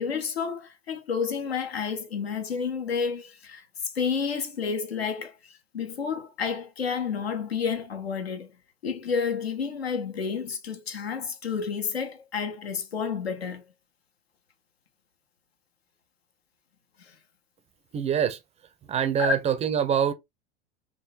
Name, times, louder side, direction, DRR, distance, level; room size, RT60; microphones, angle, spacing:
voice 1, 0.0-3.6 3.9-8.5 8.8-13.6 17.0-17.1 19.2-19.3, left 6 dB, 85° left, 0.7 m, -30 dB
voice 2, 17.9-18.4 18.9-20.1, right 8 dB, 20° right, 0.4 m, -24 dB
3.7 x 2.5 x 2.6 m
figure-of-eight pair, 80°, 30 cm